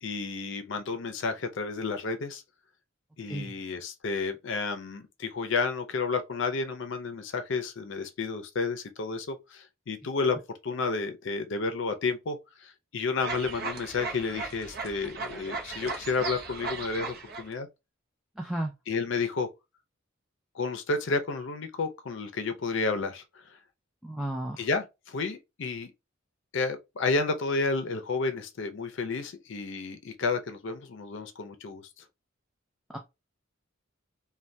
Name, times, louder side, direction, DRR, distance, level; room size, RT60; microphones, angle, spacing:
voice 1, 0.0-2.4 3.2-10.4 10.6-17.7 18.9-19.5 20.5-23.6 24.6-25.9 26.5-31.8, left 4 dB, 60° left, 0.5 m, -31 dB
sound 1, 13.2-17.5, right 3 dB, 50° right, 0.7 m, -37 dB
voice 2, 18.4-18.7 24.0-24.6 32.9-33.0, right 1 dB, ahead, 0.4 m, -33 dB
3.2 x 2.2 x 2.6 m
head